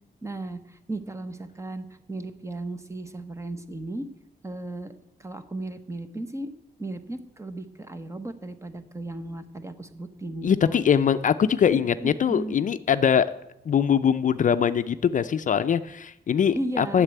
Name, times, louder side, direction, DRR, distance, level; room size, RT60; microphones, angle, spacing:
voice 1, 0.2-4.1 4.4-4.9 5.2-6.5 6.8-10.8 11.7-12.6 16.5-17.0, right 2 dB, 15° right, 11 dB, 0.9 m, -35 dB
voice 2, 10.4-13.3 13.7-17.0, left 8 dB, 50° left, 11 dB, 0.4 m, -22 dB
9.9 x 7.4 x 9.2 m, 0.84 s
wide cardioid pair, 135°, 17 cm